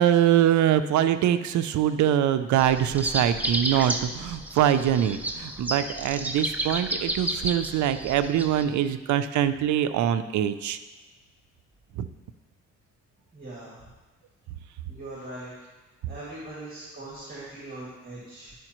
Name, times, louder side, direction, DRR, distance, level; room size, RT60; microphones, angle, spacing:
voice 1, 0.0-10.8, right 10 dB, 70° right, 11 dB, 0.5 m, -23 dB
sound 1, 2.6-8.6, right 1 dB, 5° right, 0.6 m, -32 dB
voice 2, 13.3-13.8 14.9-15.5 16.1-18.5, right 2 dB, 30° right, -6 dB, 2.2 m, -40 dB
11.0 x 5.0 x 3.0 m, 1.2 s
cardioid pair, 90°, 30 cm